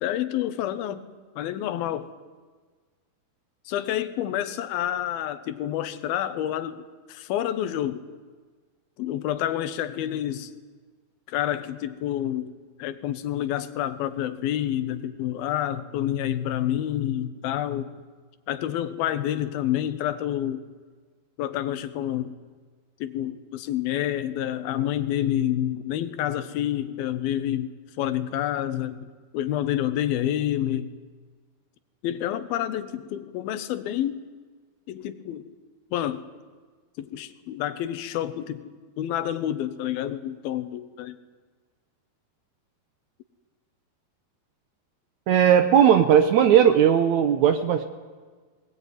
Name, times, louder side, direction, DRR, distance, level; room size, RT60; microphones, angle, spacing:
voice 1, 0.0-1.1 1.4-2.1 3.7-8.1 9.0-10.5 11.3-12.5 12.8-17.9 18.5-20.6 21.4-22.4 23.0-30.9 32.0-34.2 34.9-35.5 35.9-36.3 37.0-38.7 39.0-41.2, left 11 dB, 75° left, 11 dB, 2.8 m, -28 dB
voice 2, 45.3-47.8, right 9 dB, 80° right, 9 dB, 1.6 m, -17 dB
20.0 x 19.0 x 9.5 m, 1.5 s
omnidirectional pair, 4.5 m